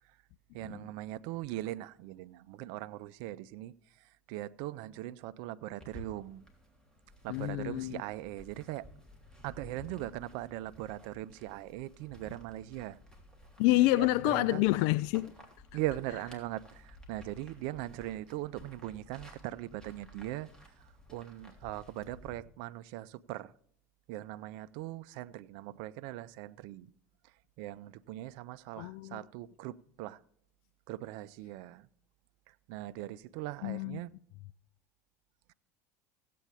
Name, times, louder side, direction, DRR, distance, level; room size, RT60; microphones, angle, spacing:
voice 1, 0.5-3.7 4.3-6.4 7.2-8.8 9.4-13.0 13.9-14.6 15.7-20.5 21.1-23.5 24.1-26.9 27.6-30.2 30.9-31.8 32.7-34.1, right 15 dB, 60° right, 0.5 m, -40 dB
sound 1, 5.8-22.4, left 1 dB, 10° left, 3.3 m, -55 dB
voice 2, 7.3-8.0 13.6-15.3 28.8-29.2 33.6-34.0, left 18 dB, 60° left, 0.4 m, -28 dB
16.0 x 8.4 x 3.5 m
hypercardioid pair, 80°, 9 cm